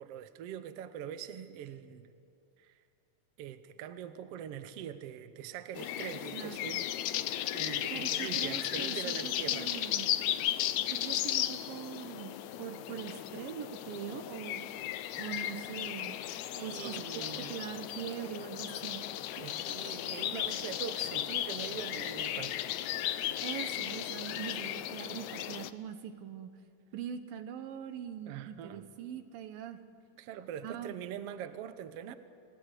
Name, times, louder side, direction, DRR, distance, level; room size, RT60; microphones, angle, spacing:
voice 1, 0.0-2.1 2.6-2.7 3.4-7.2 7.5-9.8 16.5-17.6 19.4-22.6 28.3-28.9 30.2-32.1, right 9 dB, 70° right, 1.5 m, -43 dB
sound 1, 5.8-25.7, left 12 dB, 80° left, 1.7 m, -35 dB
voice 2, 7.9-10.1 10.9-12.3 12.6-14.6 15.2-16.2 16.6-19.0 19.4-19.5 23.4-26.5 26.9-29.8 30.6-31.0, right 9 dB, 90° right, 2.9 m, -42 dB
29.0 x 17.5 x 8.3 m
omnidirectional pair, 4.0 m